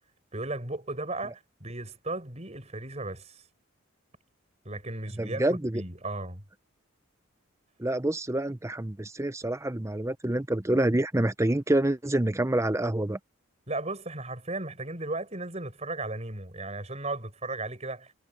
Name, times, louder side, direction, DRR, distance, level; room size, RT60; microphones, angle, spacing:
voice 1, 0.3-3.4 4.6-6.4 13.7-18.1, right 2 dB, 30° right, 5.8 m, -35 dB
voice 2, 5.2-5.8 7.8-13.2, right 1 dB, 15° right, 0.7 m, -27 dB
head